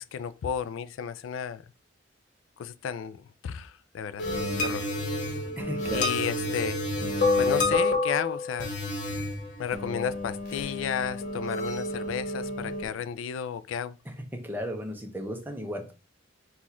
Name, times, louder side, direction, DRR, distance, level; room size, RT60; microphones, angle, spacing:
voice 1, 0.0-1.6 2.6-3.2 3.4-4.2 4.6-4.8 5.9-6.8 7.4-8.8 9.6-14.0, left 8 dB, 80° left, 0.3 m, -32 dB
sound 1, 4.2-12.8, left 2 dB, 40° left, 1.2 m, -29 dB
voice 2, 5.6-6.1 6.4-6.5 14.1-15.9, equal, 10° right, 0.6 m, -35 dB
4.1 x 2.4 x 4.4 m
head